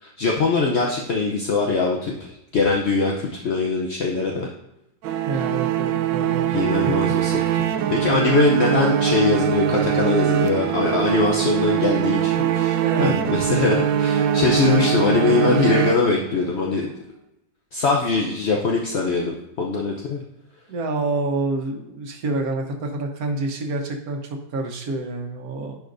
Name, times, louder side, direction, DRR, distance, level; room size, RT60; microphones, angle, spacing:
voice 1, 0.0-4.5 6.5-16.9 17.7-20.2, left 4 dB, 55° left, -1 dB, 0.7 m, -22 dB
sound 1, 5.0-16.5, right 9 dB, 80° right, 1.3 m, -22 dB
voice 2, 5.2-7.1 12.8-13.1 13.5-13.7 20.7-25.8, right 2 dB, 55° right, 3 dB, 1.4 m, -28 dB
10.5 x 5.0 x 2.6 m, 0.89 s
omnidirectional pair, 2.0 m